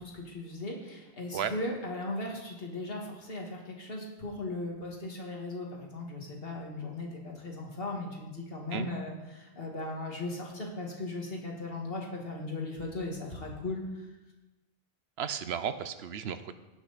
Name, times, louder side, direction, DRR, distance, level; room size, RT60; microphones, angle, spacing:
voice 1, 0.0-14.1, left 2 dB, 60° left, 0 dB, 2.1 m, -37 dB
voice 2, 15.2-16.5, right 8 dB, 75° right, 11 dB, 0.9 m, -34 dB
18.0 x 6.3 x 4.1 m, 1.1 s
omnidirectional pair, 1.1 m